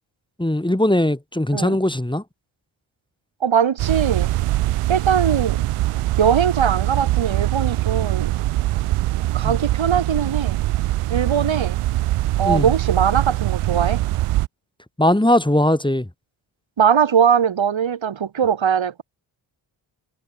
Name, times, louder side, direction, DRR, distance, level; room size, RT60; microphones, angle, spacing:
voice 1, 0.4-2.2 9.4-9.6 12.4-12.7 15.0-16.1, left 1 dB, 10° left, 6.7 m, -19 dB
voice 2, 3.4-4.3 4.9-5.6 6.2-8.3 9.3-10.6 11.1-11.8 12.4-14.0 16.8-19.0, right 8 dB, 65° right, 7.7 m, -20 dB
sound 1, 3.8-14.5, right 16 dB, 90° right, 4.4 m, -22 dB
supercardioid pair, 45°, 50 cm